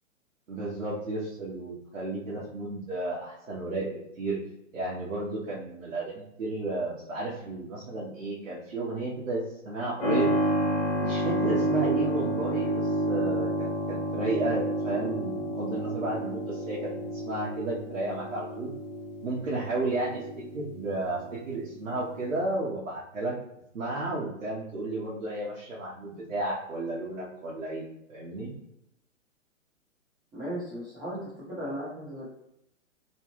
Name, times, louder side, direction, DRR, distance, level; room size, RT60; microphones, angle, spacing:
voice 1, 0.5-4.4 4.7-10.3 11.0-18.7 19.2-23.3 23.7-28.5, right 2 dB, 70° right, -7 dB, 1.0 m, -33 dB
Keyboard (musical), 10.0-22.4, right 1 dB, 40° left, 1.0 m, -30 dB
voice 2, 30.3-32.3, equal, 10° right, -10 dB, 0.6 m, -36 dB
2.9 x 2.3 x 3.0 m, 0.80 s
figure-of-eight pair, 125°, 39 cm